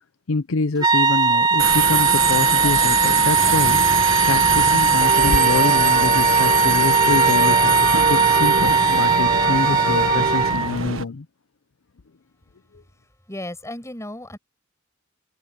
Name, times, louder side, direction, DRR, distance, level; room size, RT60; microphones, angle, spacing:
voice 1, 0.3-3.8 4.2-11.3, left 4 dB, 80° left, 0.7 m, -26 dB
sound 1, 0.8-10.8, right 3 dB, 20° right, 0.5 m, -19 dB
Subway metro underground, 1.6-11.0, right 7 dB, 75° right, 1.5 m, -24 dB
sound 2, 3.3-10.5, right 4 dB, 50° right, 4.5 m, -26 dB
voice 2, 13.3-14.4, left 1 dB, 15° left, 6.7 m, -34 dB
head